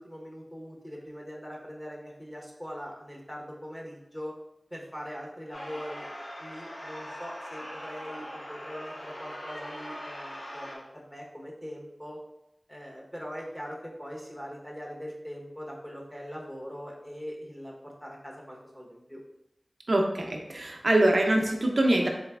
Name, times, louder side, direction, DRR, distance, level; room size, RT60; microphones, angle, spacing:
voice 1, 0.0-4.3 4.7-12.2 12.7-19.2, equal, 15° left, -3 dB, 0.9 m, -42 dB
sound 1, 5.5-10.8, equal, 65° left, 0.8 m, -41 dB
voice 2, 19.9-22.1, right 1 dB, 65° right, 1 dB, 0.4 m, -24 dB
4.0 x 3.0 x 2.3 m, 0.87 s
wide cardioid pair, 45°, 0 cm